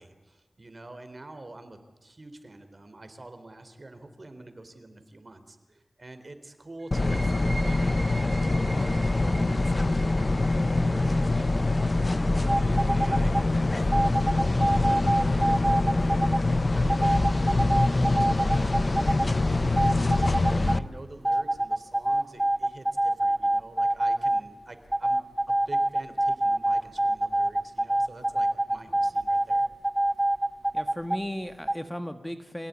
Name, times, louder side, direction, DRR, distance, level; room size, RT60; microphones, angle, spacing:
voice 1, 0.0-15.9 16.2-29.7, right 2 dB, 45° right, 9 dB, 3.9 m, -46 dB
sound 1, 6.8-14.2, right 3 dB, 65° right, 1.9 m, -45 dB
sound 2, 6.9-20.8, left 2 dB, 45° left, 0.9 m, -24 dB
sound 3, 12.5-13.4 13.9-16.4 16.9-19.3 19.6-20.8 21.2-24.4 24.9-31.2 31.7-31.8, right 1 dB, 20° right, 0.9 m, -25 dB
voice 2, 30.7-32.7, equal, 5° left, 8 dB, 1.7 m, -35 dB
27.0 x 17.0 x 9.7 m, 1.2 s
cardioid pair, 45°, 0 cm